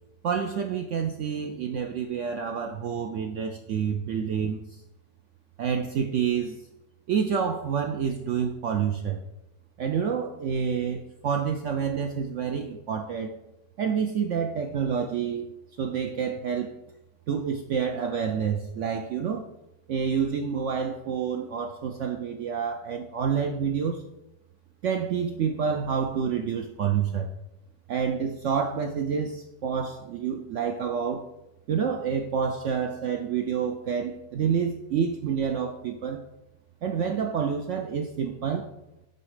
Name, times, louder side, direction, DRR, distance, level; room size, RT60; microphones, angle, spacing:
voice 1, 0.2-4.8 5.6-6.6 7.1-9.2 9.8-13.4 13.8-15.5 15.8-16.7 17.3-19.5 19.9-24.0 24.8-27.3 27.9-31.3 31.7-36.2 36.8-38.7, right 7 dB, 80° right, 4 dB, 0.6 m, -28 dB
7.1 x 4.1 x 4.9 m, 0.89 s
omnidirectional pair, 1.9 m